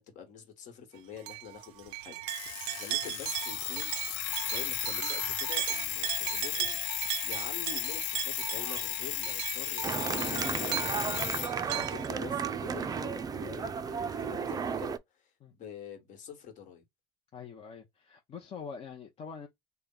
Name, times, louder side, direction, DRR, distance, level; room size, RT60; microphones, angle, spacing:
voice 1, 0.0-6.8 7.2-10.9 11.3-16.8, left 7 dB, 60° left, 1.5 m, -46 dB
sound 1, 1.3-12.1, right 16 dB, 90° right, 0.4 m, -37 dB
Alarm, 2.3-11.5, left 13 dB, 85° left, 0.6 m, -35 dB
sound 2, 9.8-15.0, right 6 dB, 25° right, 0.4 m, -33 dB
voice 2, 17.3-19.5, left 6 dB, 40° left, 0.8 m, -44 dB
3.2 x 2.2 x 3.9 m
supercardioid pair, 100°, 15 cm